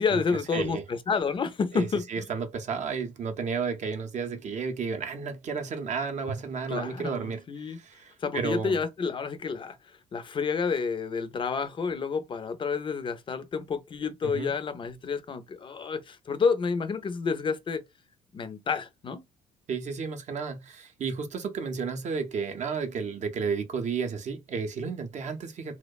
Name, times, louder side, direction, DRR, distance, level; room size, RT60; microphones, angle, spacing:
voice 1, 0.0-2.2 6.7-7.8 8.2-9.8 10.1-17.8 18.3-19.2, left 5 dB, 30° left, 0.4 m, -29 dB
voice 2, 0.5-0.8 1.7-8.8 14.2-14.5 19.7-25.8, right 5 dB, 45° right, 0.6 m, -32 dB
2.7 x 2.1 x 2.2 m
cardioid pair, 110°, 17 cm